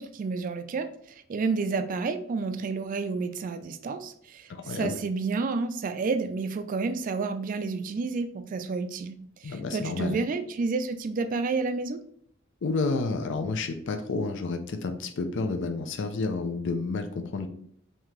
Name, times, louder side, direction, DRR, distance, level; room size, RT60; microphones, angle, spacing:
voice 1, 0.0-12.0, right 4 dB, 40° right, 9 dB, 0.3 m, -30 dB
voice 2, 4.5-5.0 9.4-10.2 12.6-17.5, left 3 dB, 60° left, 7 dB, 0.5 m, -30 dB
3.6 x 2.8 x 3.1 m, 0.64 s
head